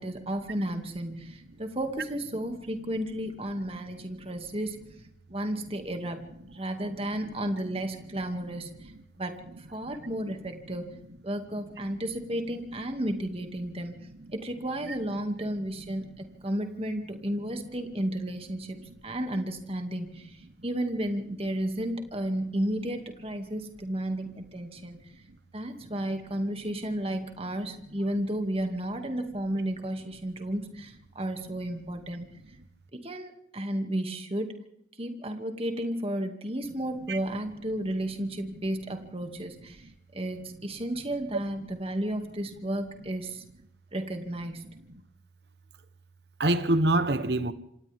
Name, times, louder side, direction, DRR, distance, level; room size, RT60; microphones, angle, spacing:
voice 1, 0.0-4.8 5.3-8.9 9.2-10.9 11.2-25.0 25.5-32.3 32.9-34.5 35.0-43.4 43.9-44.7, right 1 dB, 30° right, 2.3 m, -33 dB
voice 2, 46.4-47.5, right 1 dB, 60° right, 1.2 m, -26 dB
27.0 x 26.5 x 3.6 m
head